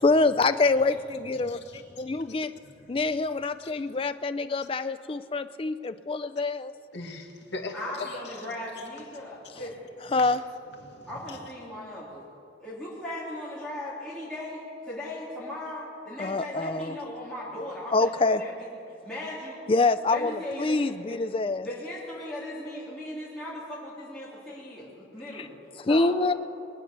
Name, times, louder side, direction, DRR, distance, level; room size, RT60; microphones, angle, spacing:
voice 1, 0.0-1.6 2.0-2.5 2.9-6.7 10.1-10.4 16.2-17.0 17.9-18.4 19.7-21.6 25.3-25.5 25.8-26.3, left 3 dB, 30° left, 11 dB, 0.4 m, -25 dB
voice 2, 1.4-2.2 2.6-3.0 3.6-3.7 6.9-8.5 8.8-8.9 10.2-10.3 10.8-11.5, left 3 dB, 65° left, 1 dB, 1.8 m, -41 dB
voice 3, 7.7-9.9 11.1-12.2 12.6-18.5 19.0-19.6 20.1-21.2 21.6-25.6 25.9-26.1, left 1 dB, 5° left, -9 dB, 3.1 m, -38 dB
21.0 x 9.3 x 6.7 m, 2.6 s
head